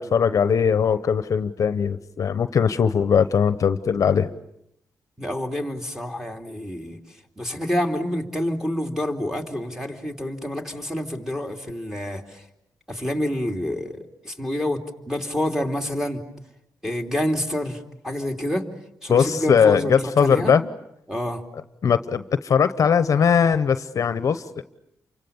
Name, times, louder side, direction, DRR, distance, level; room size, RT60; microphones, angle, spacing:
voice 1, 0.0-4.3 19.1-20.6 21.8-24.6, left 7 dB, 55° left, 12 dB, 0.9 m, -20 dB
voice 2, 5.2-7.0 7.4-12.4 12.9-16.2 16.8-18.6 19.0-20.5 21.1-21.4, left 1 dB, 5° right, 2 dB, 3.0 m, -28 dB
29.0 x 25.0 x 7.1 m, 0.79 s
cardioid pair, 95°, 7 cm